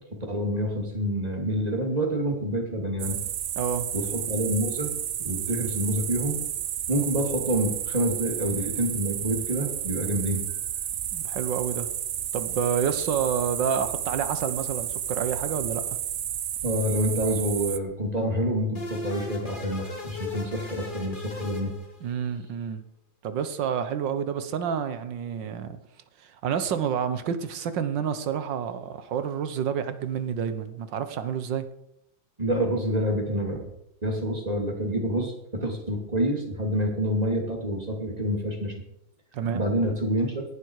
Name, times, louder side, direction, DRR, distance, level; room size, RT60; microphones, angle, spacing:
voice 1, 0.1-3.2 3.9-4.9 5.2-6.4 6.9-10.4 16.6-21.7 32.4-33.6 34.0-38.7 39.5-40.5, equal, 20° right, 2 dB, 2.9 m, -27 dB
sound 1, 3.0-17.8, right 10 dB, 60° right, 0.8 m, -32 dB
voice 2, 3.6-3.9 11.1-11.9 12.3-16.0 22.0-22.8 23.2-25.8 26.2-31.7 39.3-39.6, right 7 dB, 90° right, 11 dB, 1.8 m, -29 dB
sound 2, 18.7-22.3, left 3 dB, 25° left, 2.6 m, -37 dB
17.5 x 11.5 x 4.8 m, 0.78 s
omnidirectional pair, 1.9 m